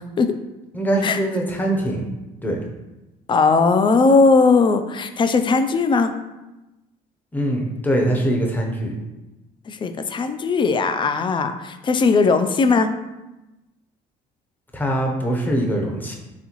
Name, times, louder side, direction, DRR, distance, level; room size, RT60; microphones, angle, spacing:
voice 1, 0.7-2.1 2.4-2.6 7.3-9.0 14.7-16.2, right 1 dB, 10° left, 0 dB, 0.7 m, -22 dB
voice 2, 3.3-6.1 9.7-12.9, left 4 dB, 30° left, 9 dB, 0.3 m, -18 dB
4.0 x 3.6 x 3.0 m, 1.0 s
cardioid pair, 110°, 17 cm